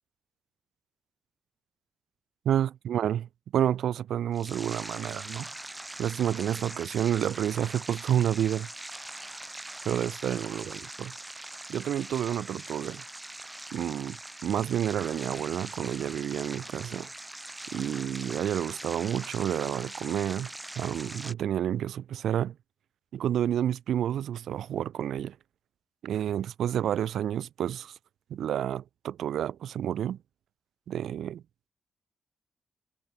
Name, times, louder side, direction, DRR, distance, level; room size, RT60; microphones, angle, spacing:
voice 1, 2.5-5.5 6.0-8.7 9.9-11.1 11.7-13.0 13.7-17.1 17.7-20.5 20.8-22.6 23.1-25.4 26.0-27.9 28.3-30.2 30.9-31.4, right 10 dB, 75° right, 0.3 m, -29 dB
sound 1, 4.3-21.3, right 1 dB, 15° right, 2.2 m, -42 dB
supercardioid pair, 50°, 0 cm